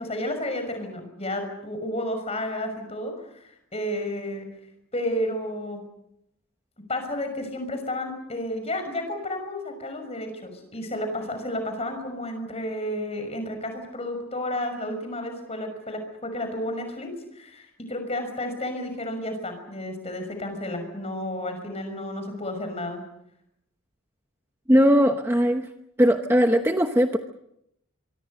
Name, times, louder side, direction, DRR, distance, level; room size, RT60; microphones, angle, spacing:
voice 1, 0.0-4.5 4.9-5.8 6.9-23.0, left 1 dB, 30° left, 6 dB, 6.0 m, -31 dB
voice 2, 24.7-25.7 26.0-27.2, equal, 10° right, 5 dB, 0.9 m, -19 dB
25.0 x 24.0 x 6.6 m, 0.79 s
head